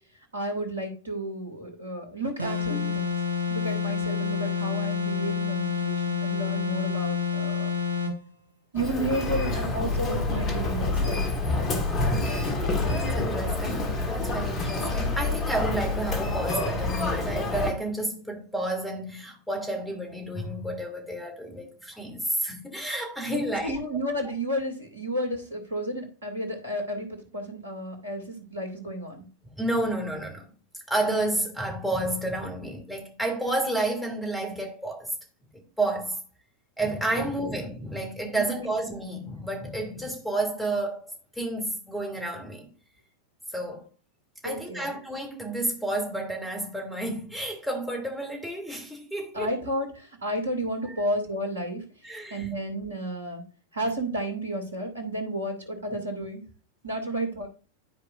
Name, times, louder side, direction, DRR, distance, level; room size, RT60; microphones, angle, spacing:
voice 1, 0.3-3.1 3.5-7.7 8.7-11.3 23.3-29.2 37.4-37.5 44.4-44.9 49.3-51.8 52.3-53.4 53.7-56.4 56.8-57.5, right 1 dB, 75° right, 2.3 m, -32 dB
sound 1, 2.4-8.2, left 6 dB, 85° left, 2.3 m, -28 dB
Human voice, 8.7-17.7, left 2 dB, 30° left, 1.4 m, -27 dB
voice 2, 12.8-23.7 29.6-30.4 30.9-35.1 35.5-36.2 36.8-42.7 43.5-43.9 44.4-49.6 50.8-50.9 52.0-52.5, right 1 dB, 5° left, 2.5 m, -31 dB
12.0 x 4.8 x 2.5 m
figure-of-eight pair, 90°, 0 cm